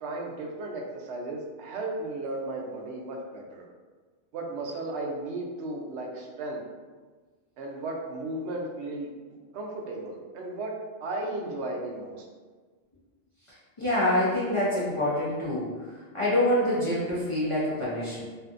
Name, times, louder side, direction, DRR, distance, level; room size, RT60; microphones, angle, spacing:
voice 1, 0.0-3.6 4.3-6.6 7.6-9.1 9.5-10.7 11.0-12.2, right 2 dB, 70° right, -1 dB, 0.8 m, -35 dB
voice 2, 13.8-15.7 16.1-18.2, left 1 dB, 45° left, -9 dB, 0.4 m, -26 dB
2.6 x 2.5 x 2.4 m, 1.4 s
omnidirectional pair, 1.2 m